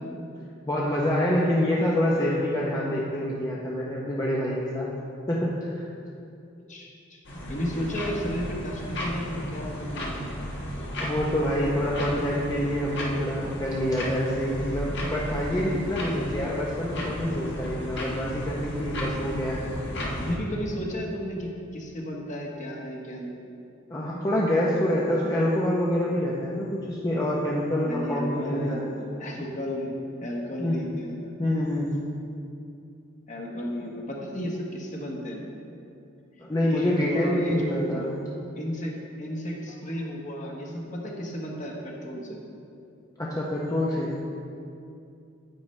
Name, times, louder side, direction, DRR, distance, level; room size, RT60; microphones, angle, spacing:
voice 1, 0.7-4.9 5.3-5.9 7.8-8.0 11.0-19.6 23.9-28.9 30.6-30.8 31.4-31.9 36.4-38.1 43.2-44.1, left 1 dB, 20° left, -5 dB, 0.7 m, -26 dB
voice 2, 6.7-7.2 7.5-10.3 20.1-23.4 27.8-29.9 30.2-31.3 33.3-35.4 36.7-38.2 38.6-42.4, equal, 40° left, -1 dB, 1.3 m, -33 dB
sound 1, 7.2-20.4, equal, 60° left, 1.4 m, -34 dB
9.8 x 8.6 x 3.2 m, 2.6 s
head